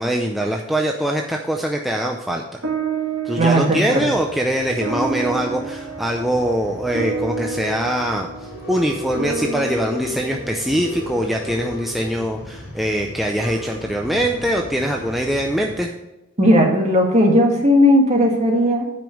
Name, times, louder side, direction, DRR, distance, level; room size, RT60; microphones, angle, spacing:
voice 1, 0.0-2.4 3.2-8.3 8.7-15.9, equal, ahead, 0 dB, 0.5 m, -22 dB
sound 1, 2.6-11.3, right 4 dB, 80° right, 1.9 m, -30 dB
voice 2, 3.4-4.1 16.4-18.9, equal, 35° right, 1 dB, 1.7 m, -16 dB
Male speech man speaking / Chatter / Rattle, 3.9-15.9, left 1 dB, 90° left, 2.9 m, -36 dB
9.2 x 5.3 x 6.3 m, 0.98 s
head